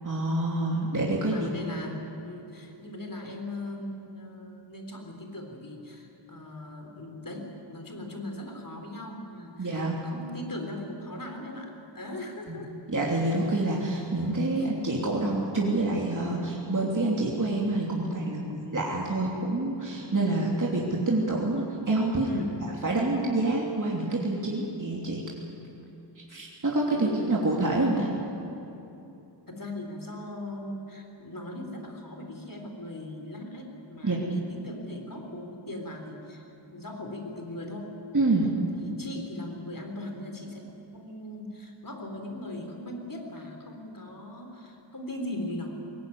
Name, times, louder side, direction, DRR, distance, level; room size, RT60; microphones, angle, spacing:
voice 1, 0.0-1.5 9.6-10.0 12.5-12.6 12.9-22.4 22.8-25.3 26.3-28.1 34.0-34.2 38.1-38.5, right 2 dB, 40° right, -3 dB, 3.1 m, -27 dB
voice 2, 1.1-12.8 14.5-14.7 22.2-22.6 26.9-27.6 29.5-38.0 38.7-40.7 40.9-45.8, left 1 dB, 45° left, 3 dB, 4.0 m, -39 dB
21.5 x 19.5 x 9.4 m, 2.9 s
wide cardioid pair, 75°, 46 cm